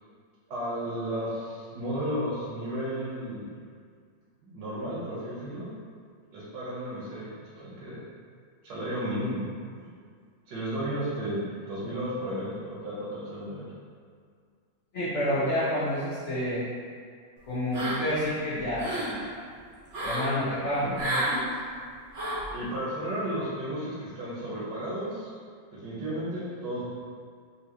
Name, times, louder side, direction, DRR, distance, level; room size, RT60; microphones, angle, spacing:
voice 1, 0.5-3.5 4.4-5.7 6.3-7.3 7.6-8.0 8.6-9.4 9.7-9.9 10.5-11.4 11.7-13.7 20.8-20.9 22.5-25.3 25.7-26.8, equal, 75° right, -9 dB, 1.5 m, -33 dB
voice 2, 14.9-16.6 17.5-19.3 20.0-21.4, left 1 dB, 70° left, -9 dB, 0.7 m, -29 dB
sound 1, 17.7-18.2 18.6-19.1 19.9-20.3 20.9-21.4 22.1-22.5, right 1 dB, 50° right, 0.9 m, -30 dB
3.6 x 2.7 x 2.9 m, 2.1 s
omnidirectional pair, 2.0 m